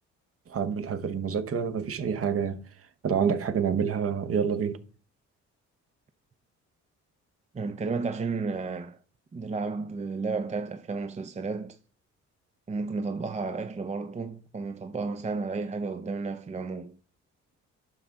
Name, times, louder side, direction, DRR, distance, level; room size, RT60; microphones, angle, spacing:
voice 1, 0.5-2.6 3.0-4.8, right 7 dB, 50° right, 1.1 m, -27 dB
voice 2, 7.5-9.0 9.3-11.8 12.7-17.0, right 4 dB, 25° right, 0.6 m, -32 dB
11.5 x 6.0 x 3.6 m
cardioid pair, 90°, 30 cm